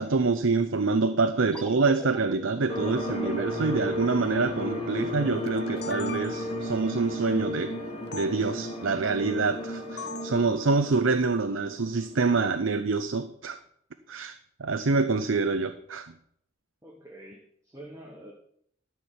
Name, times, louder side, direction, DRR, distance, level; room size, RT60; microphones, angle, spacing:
voice 1, 0.0-7.7 8.1-13.6 14.1-16.1, right 4 dB, 70° right, 9 dB, 0.6 m, -26 dB
sound 1, 1.5-6.8, equal, 5° left, 0.5 m, -44 dB
sound 2, 2.7-12.6, equal, 30° left, 2.0 m, -34 dB
sound 3, 5.5-6.7 8.1-8.3 10.0-10.4, left 5 dB, 50° left, 0.6 m, -39 dB
voice 2, 16.8-18.3, right 1 dB, 15° right, -1 dB, 1.2 m, -46 dB
13.0 x 4.5 x 8.1 m, 0.68 s
head